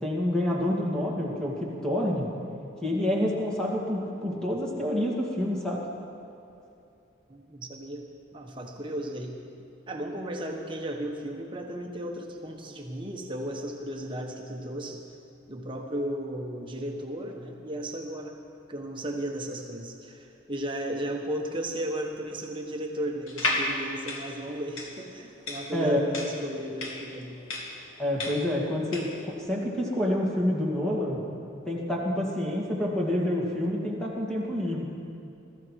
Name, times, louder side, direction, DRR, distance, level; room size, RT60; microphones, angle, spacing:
voice 1, 0.0-2.3 2.8-5.8 25.7-26.0 28.0-31.2 31.7-34.8, left 1 dB, 5° left, -3 dB, 2.4 m, -28 dB
voice 2, 7.3-8.1 8.3-9.4 9.9-15.0 15.5-18.4 18.7-27.4, right 1 dB, 25° right, 1 dB, 1.2 m, -35 dB
sound 1, 23.3-29.2, left 2 dB, 90° left, 2.2 m, -33 dB
21.5 x 14.0 x 4.7 m, 2.8 s
head